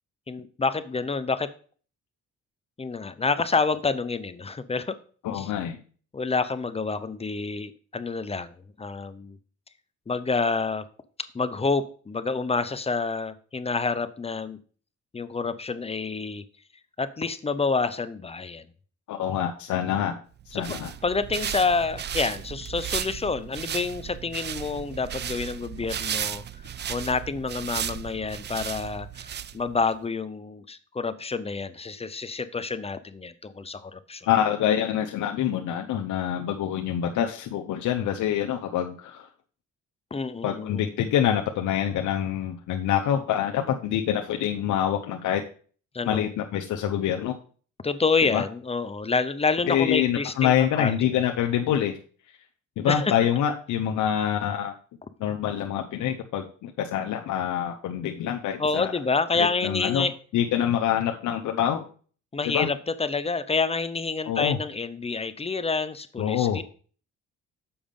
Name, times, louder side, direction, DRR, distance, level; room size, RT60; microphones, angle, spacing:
voice 1, 0.3-1.5 2.8-5.0 5.3-5.5 6.1-9.4 10.1-10.8 11.3-14.6 15.1-16.4 17.0-18.6 20.5-20.6 21.0-26.4 26.9-29.3 29.5-34.3 40.1-40.9 45.9-46.3 47.8-50.9 52.9-53.1 58.6-60.1 62.3-66.6, left 4 dB, 20° left, 13 dB, 0.6 m, -28 dB
voice 2, 5.2-5.8 19.1-20.2 20.5-20.9 34.3-39.3 40.4-45.4 46.0-47.4 48.3-48.4 49.7-52.0 52.8-54.7 55.2-58.9 59.3-60.1 60.3-61.9 62.4-62.7 64.3-64.6 66.2-66.6, left 10 dB, 75° left, 3 dB, 0.8 m, -26 dB
sound 1, 20.4-29.9, right 9 dB, 35° right, 0.4 m, -35 dB
7.1 x 5.0 x 5.2 m, 0.43 s
cardioid pair, 90°, 30 cm